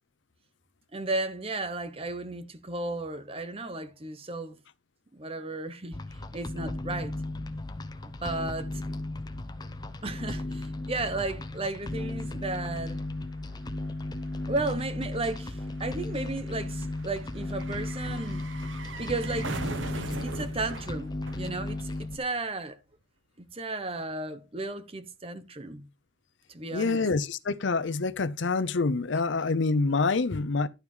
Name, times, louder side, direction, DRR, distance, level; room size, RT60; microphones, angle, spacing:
voice 1, 0.9-4.6 5.1-6.0 6.3-7.1 8.2-8.8 10.0-13.0 14.5-18.4 19.0-19.6 20.2-22.8 23.4-25.9 26.5-27.0, right 2 dB, 30° right, 0.9 m, -34 dB
sound 1, 5.9-22.2, left 2 dB, 20° left, 0.8 m, -35 dB
sound 2, 11.5-11.6 11.8-22.2 22.5-22.6, right 3 dB, 80° right, 1.2 m, -42 dB
voice 2, 26.7-30.7, left 3 dB, 70° left, 0.6 m, -26 dB
11.5 x 4.6 x 5.4 m
head